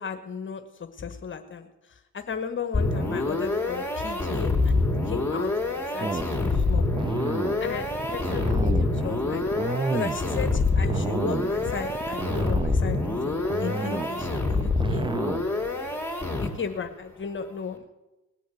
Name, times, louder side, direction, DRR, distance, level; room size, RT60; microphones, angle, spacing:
voice 1, 0.0-6.8 7.6-9.4 9.9-15.1 16.4-17.8, left 6 dB, 40° left, 9 dB, 1.2 m, -35 dB
sound 1, 2.7-16.8, left 3 dB, 5° left, 3.6 m, -26 dB
sound 2, 6.0-15.5, right 4 dB, 15° right, 0.5 m, -31 dB
19.0 x 6.4 x 8.3 m, 1.0 s
cardioid pair, 90°, 30 cm